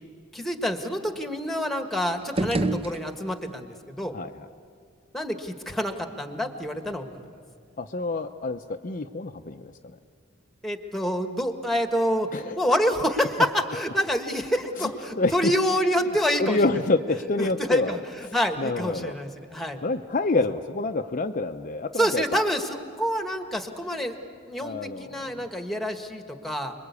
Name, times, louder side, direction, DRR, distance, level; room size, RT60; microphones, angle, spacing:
voice 1, 0.3-4.1 5.1-7.2 10.6-12.3 12.6-16.6 17.4-18.0 18.3-19.8 22.0-24.1 24.5-26.7, equal, ahead, 6 dB, 1.5 m, -27 dB
sound 1, 2.2-3.6, right 2 dB, 25° right, 0.7 m, -29 dB
voice 2, 4.1-4.5 7.8-9.7 12.3-12.6 14.8-14.9 15.2-15.5 16.4-18.0 18.2-19.1 19.8-22.5 24.6-25.4, left 2 dB, 40° left, 5 dB, 0.7 m, -27 dB
29.5 x 22.0 x 8.4 m, 2.2 s
head